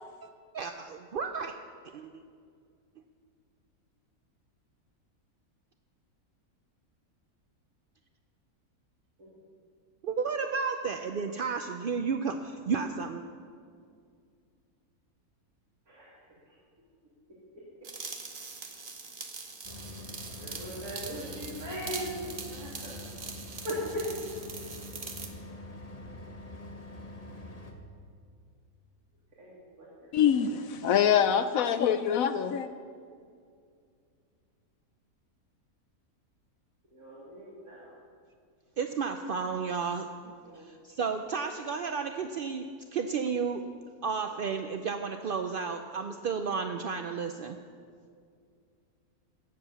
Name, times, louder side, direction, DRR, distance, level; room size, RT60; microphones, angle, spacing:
voice 1, 0.5-1.5 1.9-2.2 10.0-13.2 38.8-40.3 40.6-43.7 44.0-47.6, right 5 dB, 65° right, 6 dB, 0.5 m, -32 dB
sound 1, 17.8-25.3, right 4 dB, 40° right, 1.1 m, -42 dB
sound 2, 19.6-27.7, left 1 dB, 25° left, 1.3 m, -45 dB
voice 2, 20.4-22.1 22.5-23.0 23.6-24.1 29.4-30.1 36.9-37.9 40.4-40.6, equal, 80° right, -8 dB, 3.4 m, -39 dB
voice 3, 30.1-32.7, left 8 dB, 75° left, 11 dB, 1.0 m, -25 dB
17.0 x 7.5 x 7.0 m, 2.3 s
omnidirectional pair, 1.5 m